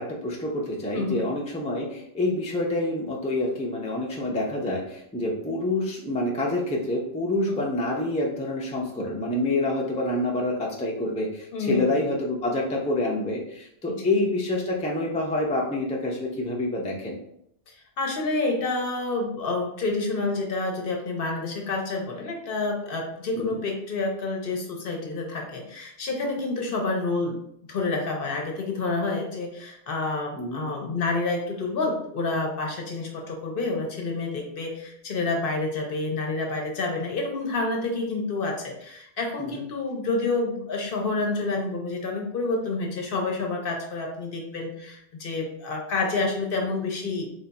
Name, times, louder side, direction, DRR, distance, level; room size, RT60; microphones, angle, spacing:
voice 1, 0.0-17.2 23.3-23.6 30.4-30.7 39.4-39.6, left 1 dB, 10° left, -2 dB, 0.3 m, -27 dB
voice 2, 0.9-1.2 7.5-7.6 11.5-11.9 13.9-14.1 17.7-47.3, left 3 dB, 55° left, 2 dB, 0.7 m, -28 dB
3.3 x 2.3 x 3.9 m, 0.73 s
omnidirectional pair, 1.2 m